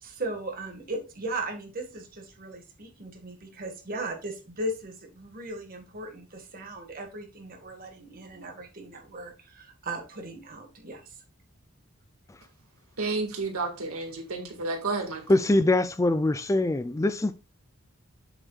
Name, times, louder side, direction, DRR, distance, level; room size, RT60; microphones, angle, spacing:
voice 1, 0.0-11.0, right 2 dB, 40° right, 1.8 m, -37 dB
voice 2, 13.0-15.2, right 3 dB, 90° right, 1.9 m, -31 dB
voice 3, 15.3-17.3, left 2 dB, 15° left, 0.3 m, -23 dB
8.1 x 7.3 x 2.4 m
head